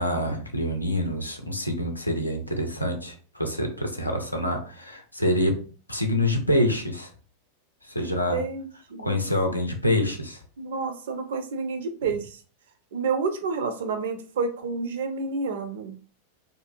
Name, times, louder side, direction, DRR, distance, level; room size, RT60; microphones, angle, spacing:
voice 1, 0.0-5.6 5.9-7.1 7.9-8.4 9.0-10.4, left 1 dB, 85° left, 4 dB, 0.5 m, -26 dB
voice 2, 8.3-9.2 10.6-12.3 12.9-15.9, right 4 dB, 60° right, 7 dB, 0.5 m, -29 dB
2.6 x 2.3 x 2.5 m, 0.38 s
figure-of-eight pair, 90°, 0 cm